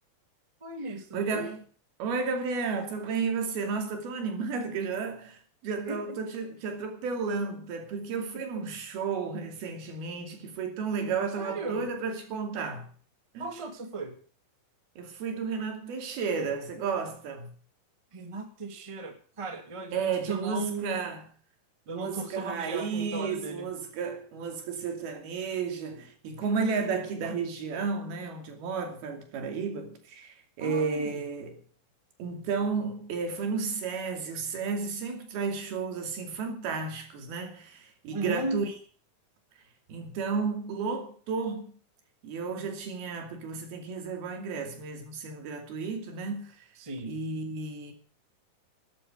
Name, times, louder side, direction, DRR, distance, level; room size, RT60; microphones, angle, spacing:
voice 1, 0.6-1.5 5.8-6.2 8.3-8.7 11.4-11.9 13.4-14.2 18.1-21.1 21.9-23.7 30.6-31.2 38.1-38.6 46.7-47.2, right 3 dB, 15° right, 1.0 m, -36 dB
voice 2, 1.1-1.6 2.0-12.9 13.3-13.4 15.0-17.5 19.9-21.2 21.9-31.6 32.2-38.7 39.9-41.7 42.2-46.6 47.1-47.9, right 5 dB, 85° right, 4.5 m, -32 dB
12.5 x 10.5 x 8.0 m
omnidirectional pair, 4.3 m